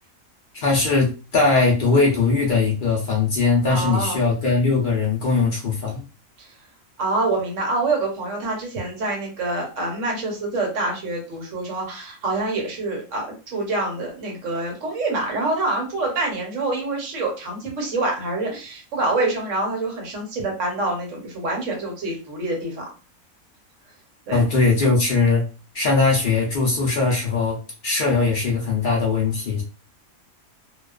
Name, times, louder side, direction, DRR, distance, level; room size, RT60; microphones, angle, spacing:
voice 1, 0.5-6.0 24.3-25.4 25.7-27.6 27.8-29.6, left 4 dB, 65° left, -2 dB, 0.5 m, -20 dB
voice 2, 3.7-4.2 6.4-6.5 7.0-22.8 24.3-24.5, right 2 dB, 60° right, 0 dB, 1.1 m, -26 dB
2.4 x 2.3 x 2.3 m, 0.34 s
omnidirectional pair, 1.5 m